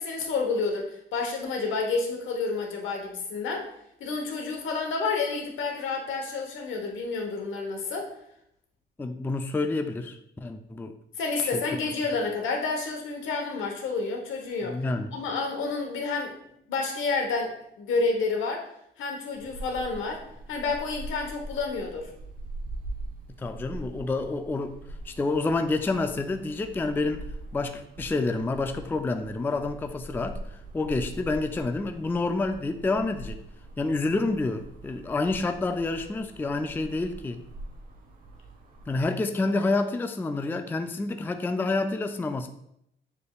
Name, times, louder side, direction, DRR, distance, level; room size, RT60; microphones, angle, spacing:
voice 1, 0.0-3.7 4.0-8.1 11.2-14.8 15.1-16.3 16.7-18.6 19.0-20.2 20.5-22.1, left 4 dB, 80° left, 2 dB, 1.0 m, -29 dB
voice 2, 9.0-10.9 14.7-15.1 23.4-24.8 25.1-27.2 27.5-30.4 30.7-33.4 33.8-37.4 38.9-42.5, left 3 dB, 10° left, 7 dB, 0.3 m, -28 dB
sound 1, 19.3-39.0, right 2 dB, 45° right, 0.9 m, -42 dB
6.7 x 3.2 x 2.3 m, 0.75 s
cardioid pair, 90°, 20 cm